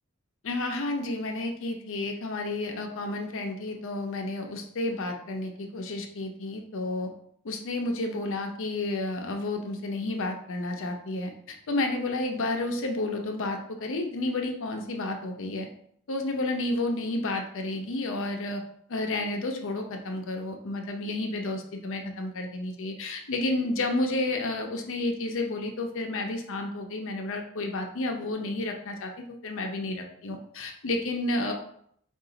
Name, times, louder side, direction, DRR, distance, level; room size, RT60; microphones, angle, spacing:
voice 1, 0.4-7.1 7.4-15.7 16.1-18.6 18.9-31.5, left 2 dB, 60° left, 4 dB, 0.6 m, -31 dB
4.8 x 2.5 x 3.8 m, 0.66 s
head